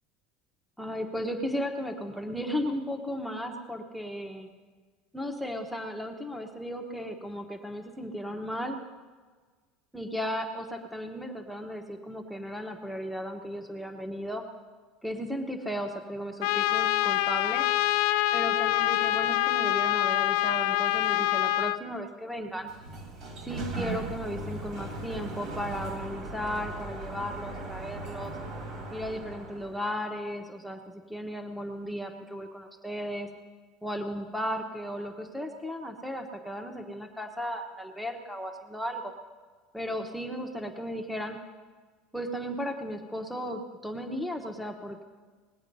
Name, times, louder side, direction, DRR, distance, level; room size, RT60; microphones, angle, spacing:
voice 1, 0.8-4.5 5.1-8.8 9.9-14.4 15.0-17.7 18.3-22.7 23.4-28.4 28.9-33.3 33.8-39.1 39.7-41.4 42.1-45.0, equal, ahead, 1 dB, 1.0 m, -35 dB
Trumpet, 16.4-21.8, left 15 dB, 70° left, 0.5 m, -25 dB
Sliding door, 22.5-29.9, right 2 dB, 45° right, 2.2 m, -38 dB
20.0 x 8.1 x 5.4 m, 1.4 s
cardioid pair, 155°, 0 cm